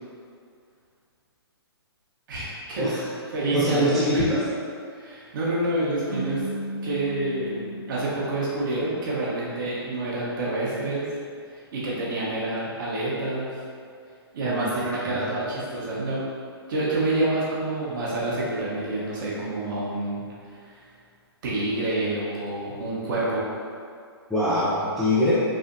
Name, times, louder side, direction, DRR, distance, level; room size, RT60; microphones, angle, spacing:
voice 1, 2.3-2.9 3.3-4.3 4.9-6.4 6.8-11.1 11.5-13.5 14.3-16.2 16.7-20.2 20.6-20.8 21.4-23.4, right 2 dB, 50° right, -6 dB, 1.0 m, -28 dB
voice 2, 3.5-4.4 14.4-15.3 24.3-25.4, left 1 dB, ahead, -12 dB, 0.4 m, -24 dB
sound 1, 6.1-9.3, equal, 25° left, 0.8 m, -35 dB
3.3 x 2.5 x 2.6 m, 2.3 s
hypercardioid pair, 140°, 14 cm